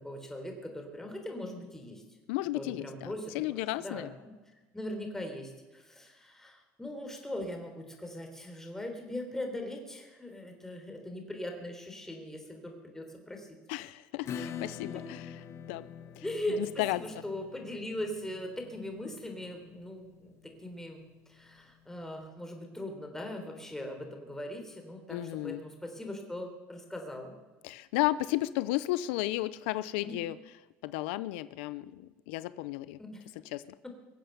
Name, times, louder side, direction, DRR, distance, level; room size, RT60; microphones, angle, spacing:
voice 1, 0.0-2.0 2.5-4.3 4.7-13.6 14.9-15.0 16.2-27.3 30.0-30.2 33.0-33.2, left 1 dB, 5° left, 4 dB, 3.8 m, -40 dB
voice 2, 2.3-4.1 13.7-15.2 15.7-15.9 16.2-16.3 16.8-17.0 25.1-25.6 27.6-30.3 30.8-33.0 33.5-33.6, left 17 dB, 90° left, 16 dB, 0.5 m, -33 dB
Acoustic guitar / Strum, 14.3-21.5, left 7 dB, 50° left, 1.2 m, -45 dB
23.5 x 7.9 x 6.9 m, 1.2 s
supercardioid pair, 110°, 6 cm